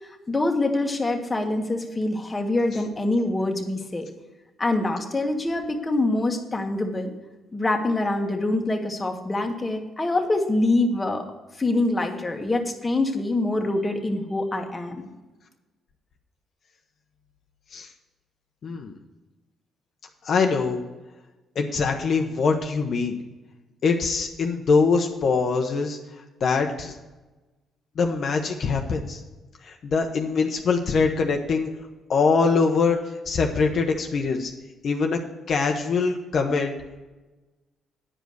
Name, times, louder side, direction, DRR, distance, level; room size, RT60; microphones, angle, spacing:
voice 1, 0.3-4.1 4.6-7.1 7.5-11.2 11.6-15.1, left 2 dB, 20° left, 3 dB, 1.5 m, -25 dB
voice 2, 18.6-18.9 20.2-20.8 21.5-23.2 23.8-26.0 26.4-27.0 28.0-29.2 29.6-31.7 32.1-34.5 34.8-35.2 35.5-36.7, left 4 dB, 55° left, 3 dB, 0.9 m, -23 dB
9.9 x 5.1 x 7.9 m, 1.2 s
cardioid pair, 90°, 0 cm